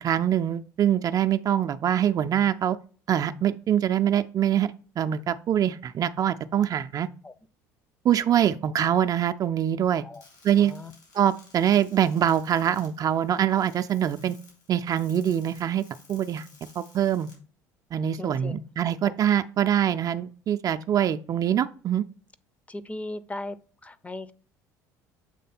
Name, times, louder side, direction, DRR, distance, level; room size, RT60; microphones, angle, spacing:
voice 1, 0.0-2.8 3.1-7.1 8.0-10.0 10.4-10.7 11.1-14.4 14.7-15.8 16.1-16.5 16.8-17.3 17.9-22.0, right 10 dB, 40° right, 0.4 m, -24 dB
sound 1, 10.1-17.3, left 3 dB, 80° left, 3.3 m, -55 dB
voice 2, 10.6-10.9 18.1-18.6 19.0-19.1 22.7-23.6 23.8-24.3, left 2 dB, 15° left, 0.5 m, -37 dB
7.6 x 3.3 x 4.2 m
hypercardioid pair, 65°, 9 cm